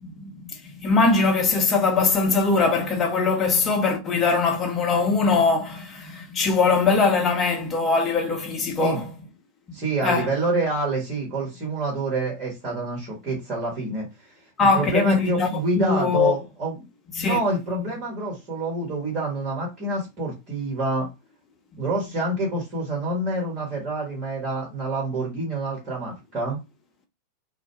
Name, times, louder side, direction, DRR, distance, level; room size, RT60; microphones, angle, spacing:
voice 1, 0.0-9.1 10.0-10.3 14.6-15.5 15.8-16.3 17.2-17.4, left 4 dB, 25° left, 0.6 m, -21 dB
voice 2, 9.7-14.1 14.7-16.8 17.2-21.1 21.8-26.6, right 2 dB, 35° right, 1.1 m, -27 dB
2.2 x 2.0 x 3.0 m
figure-of-eight pair, 90°, 0 cm